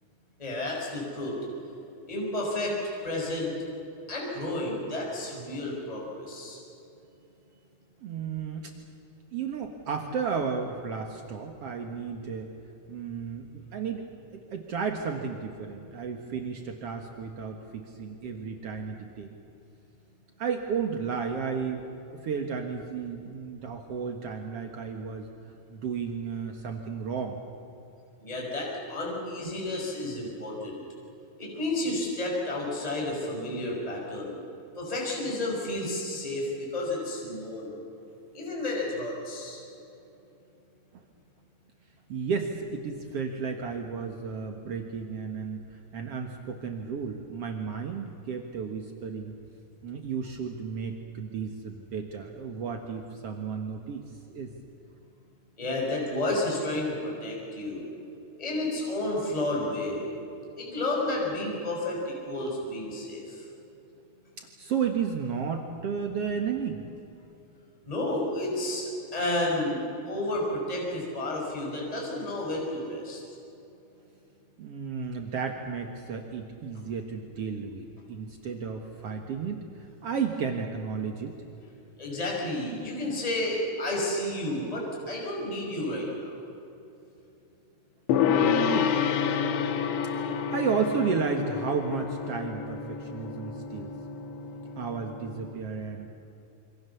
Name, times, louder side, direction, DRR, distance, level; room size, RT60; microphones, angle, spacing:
voice 1, 0.4-1.3 2.1-2.7 3.0-3.5 4.1-6.6 28.2-30.8 31.4-34.4 34.8-37.8 38.3-39.6 55.6-57.9 58.4-60.1 60.6-63.4 67.9-68.9 69.1-73.2 82.0-86.4, left 1 dB, 10° left, -2 dB, 5.7 m, -31 dB
voice 2, 8.0-8.7 9.3-12.5 12.9-14.1 14.3-19.3 20.4-21.9 22.2-25.3 25.7-27.4 40.9-41.0 42.1-49.3 49.8-54.5 64.4-66.8 74.6-81.3 88.3-88.9 90.5-93.9 94.8-96.1, right 6 dB, 70° right, 3 dB, 1.4 m, -33 dB
Gong, 88.1-95.5, left 7 dB, 80° left, 3.6 m, -29 dB
27.5 x 26.0 x 7.1 m, 2.9 s
omnidirectional pair, 5.2 m